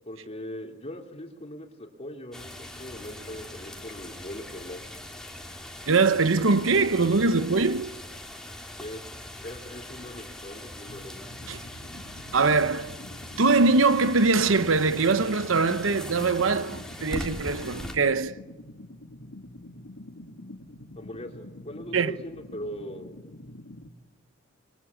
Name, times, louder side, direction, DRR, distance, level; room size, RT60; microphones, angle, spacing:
voice 1, 0.1-4.9 8.8-9.0 9.4-11.2 21.0-23.1, left 1 dB, 35° left, 3.6 m, -40 dB
sound 1, 2.3-17.9, left 1 dB, 5° left, 3.4 m, -41 dB
voice 2, 5.8-7.9 11.5-11.7 12.3-12.9 13.4-18.3 21.9-22.1, right 3 dB, 85° right, 0.9 m, -22 dB
sound 2, 10.9-23.9, left 1 dB, 80° left, 2.3 m, -46 dB
27.5 x 23.0 x 8.6 m
head